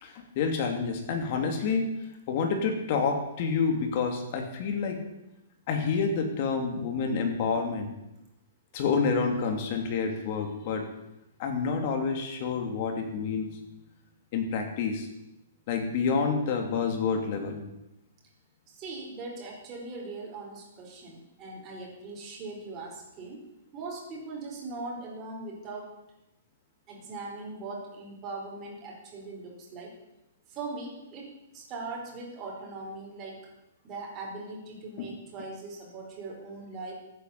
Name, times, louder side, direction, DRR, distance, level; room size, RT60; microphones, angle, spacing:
voice 1, 0.0-1.9 2.3-5.0 5.7-7.9 8.7-10.8 11.4-13.6 14.3-15.1 15.7-17.6 35.0-35.1, left 5 dB, 40° left, 4 dB, 2.9 m, -28 dB
voice 2, 18.7-23.4 23.7-25.9 26.9-29.9 30.5-31.3 31.5-33.5 33.8-36.9, right 3 dB, 20° right, -1 dB, 4.5 m, -40 dB
14.0 x 9.4 x 8.5 m, 0.91 s
hypercardioid pair, 165°, 0 cm